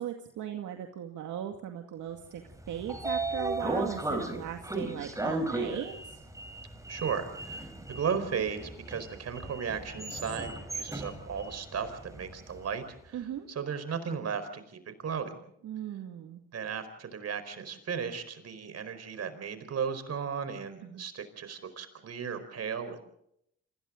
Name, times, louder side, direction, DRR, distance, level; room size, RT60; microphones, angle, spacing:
voice 1, 0.0-2.4 2.7-6.2 13.1-13.5 15.6-16.4 20.8-21.0, right 10 dB, 75° right, 4 dB, 2.2 m, -38 dB
Sliding door, 2.5-12.6, right 2 dB, 10° right, 4.7 m, -36 dB
voice 2, 6.9-13.2 13.5-15.4 16.5-23.0, right 6 dB, 55° right, 11 dB, 4.6 m, -35 dB
30.0 x 26.0 x 3.9 m, 0.72 s
cardioid pair, 90°, 30 cm